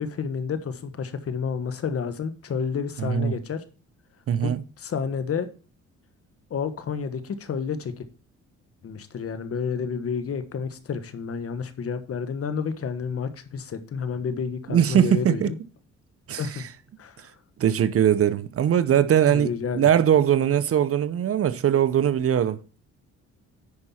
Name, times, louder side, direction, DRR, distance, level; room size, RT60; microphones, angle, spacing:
voice 1, 0.0-3.6 4.4-4.5 4.8-5.5 6.5-8.0 8.8-15.6 16.4-16.6 17.0-17.3 19.3-19.9, left 6 dB, 50° left, 1.2 m, -30 dB
voice 2, 3.0-3.3 4.3-4.6 14.7-15.5 16.3-16.6 17.6-19.5 19.7-22.6, right 9 dB, 50° right, 0.7 m, -21 dB
9.7 x 5.5 x 4.2 m
cardioid pair, 90°, 30 cm